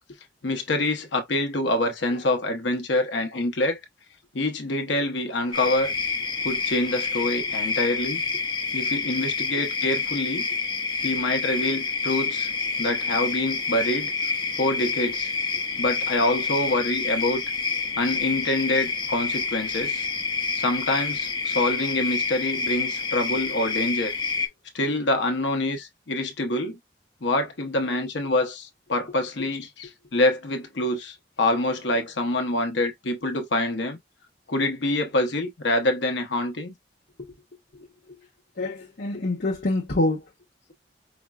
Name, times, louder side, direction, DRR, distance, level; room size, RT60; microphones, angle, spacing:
voice 1, 0.4-3.8 4.3-5.9 6.4-8.2 8.7-10.4 11.0-12.5 12.8-14.1 14.6-15.3 15.8-17.4 18.0-20.1 20.6-24.1 24.7-26.8 27.2-34.0 34.5-36.7, left 2 dB, 80° left, 0.8 m, -26 dB
sound 1, 5.5-24.5, left 4 dB, 25° left, 0.6 m, -28 dB
voice 2, 38.6-40.3, left 2 dB, 60° left, 0.9 m, -26 dB
5.0 x 2.1 x 2.3 m
head